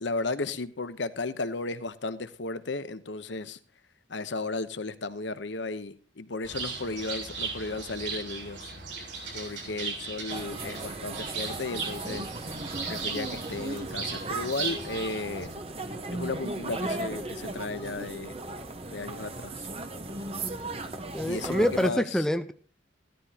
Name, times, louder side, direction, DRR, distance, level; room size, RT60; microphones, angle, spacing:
voice 1, 0.0-3.6 4.1-8.7 9.3-12.3 12.9-15.5 16.1-18.4 18.9-19.7 21.3-22.2, left 3 dB, 80° left, 0.9 m, -34 dB
Bird, 6.4-15.4, right 5 dB, 85° right, 7.7 m, -37 dB
sound 1, 10.3-21.9, right 2 dB, 30° right, 1.1 m, -37 dB
voice 2, 21.1-22.5, equal, 5° left, 0.6 m, -26 dB
16.5 x 13.0 x 2.9 m
head